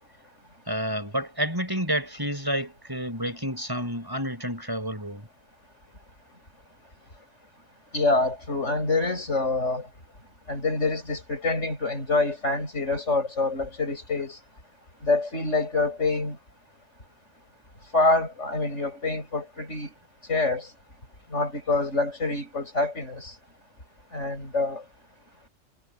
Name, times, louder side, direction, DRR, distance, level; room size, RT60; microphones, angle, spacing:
voice 1, 0.7-5.3, equal, 15° right, 5.9 m, -29 dB
voice 2, 7.9-9.8 10.5-14.4 15.0-16.4 17.9-19.9 20.3-20.7 21.3-23.3 24.1-24.8, left 3 dB, 65° left, 7.4 m, -26 dB
omnidirectional pair, 1.3 m